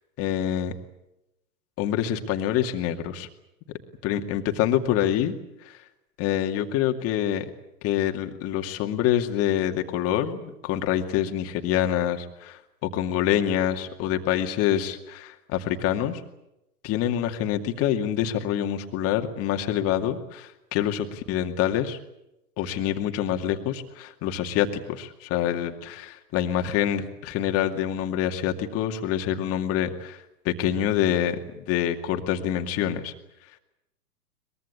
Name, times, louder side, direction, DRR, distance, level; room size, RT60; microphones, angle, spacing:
voice 1, 0.2-0.7 1.8-3.3 4.0-5.3 5.6-5.8 6.2-7.5 7.8-16.2 16.8-22.0 22.6-30.2 30.4-33.1, left 10 dB, 30° left, 5 dB, 2.3 m, -26 dB
23.5 x 22.0 x 8.7 m, 0.87 s
hypercardioid pair, 115°, 50 cm